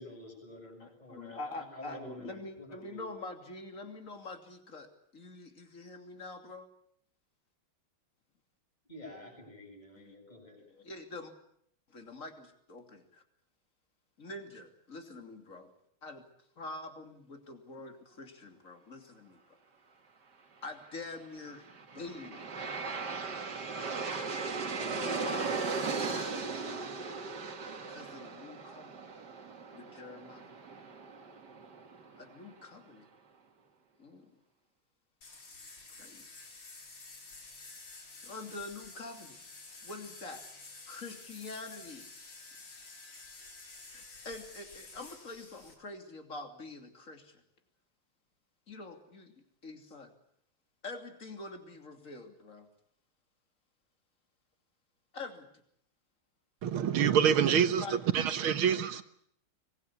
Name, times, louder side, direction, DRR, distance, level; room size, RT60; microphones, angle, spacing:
voice 1, 0.0-3.1 8.9-10.6, left 1 dB, 20° left, 1 dB, 7.5 m, -49 dB
voice 2, 1.1-6.7 10.0-10.1 10.7-11.3 11.9-13.2 14.2-15.7 16.0-16.2 16.6-19.4 20.6-21.7 21.9-22.8 24.9-26.5 27.9-29.1 29.7-30.6 32.2-33.1 34.0-34.3 35.7-36.3 37.9-39.4 39.8-40.4 40.9-42.1 43.9-47.4 48.7-49.3 49.6-50.1 50.8-52.7 55.1-55.5 57.4-58.7, left 3 dB, 40° left, 5 dB, 3.3 m, -45 dB
Aircraft, 21.5-32.5, right 4 dB, 55° right, 2.6 m, -38 dB
sound 1, 35.2-45.7, left 3 dB, 75° left, 4.6 m, -50 dB
voice 3, 56.6-59.0, right 8 dB, 80° right, 11 dB, 2.1 m, -26 dB
24.5 x 20.5 x 8.5 m, 0.68 s
omnidirectional pair, 2.3 m